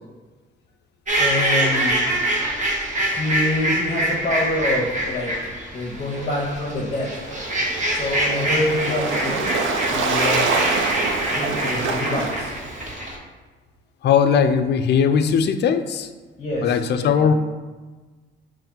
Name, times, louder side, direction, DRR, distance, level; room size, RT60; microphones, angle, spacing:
voice 1, 1.1-2.0 3.0-5.3 5.7-7.5 7.9-9.5 9.8-10.8 11.0-12.5 16.4-17.3, left 1 dB, 35° left, -5 dB, 0.9 m, -26 dB
sound 1, 1.1-13.2, right 1 dB, 40° right, 1.1 m, -25 dB
Waves surf, 7.2-12.9, right 4 dB, 75° right, 0.5 m, -26 dB
voice 2, 14.0-16.1 16.6-17.3, left 7 dB, 60° left, 9 dB, 0.4 m, -19 dB
5.4 x 2.5 x 3.8 m, 1.3 s
cardioid pair, 90°, 20 cm